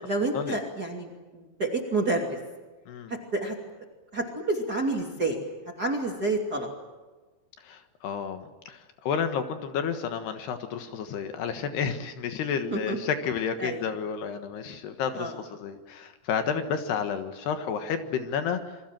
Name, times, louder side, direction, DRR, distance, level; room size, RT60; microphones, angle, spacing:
voice 1, 0.0-2.4 3.1-3.5 4.1-5.4 5.8-6.7 12.7-13.0 13.6-13.9 15.1-15.4, right 2 dB, 25° right, 2 dB, 2.4 m, -29 dB
voice 2, 7.6-18.8, left 7 dB, 70° left, 8 dB, 3.3 m, -31 dB
28.0 x 24.0 x 7.5 m, 1.2 s
omnidirectional pair, 5.2 m